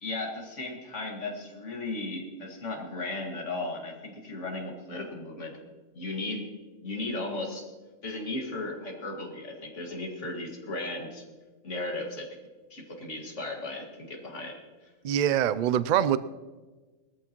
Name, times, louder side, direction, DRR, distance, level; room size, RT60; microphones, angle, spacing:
voice 1, 0.0-5.6 5.9-6.5 6.8-7.7 8.0-11.2 11.6-12.4 12.7-14.6, left 2 dB, 65° left, 2.4 m, -36 dB
voice 2, 15.0-16.2, right 10 dB, 85° right, 0.4 m, -24 dB
20.0 x 14.0 x 3.0 m
omnidirectional pair, 1.3 m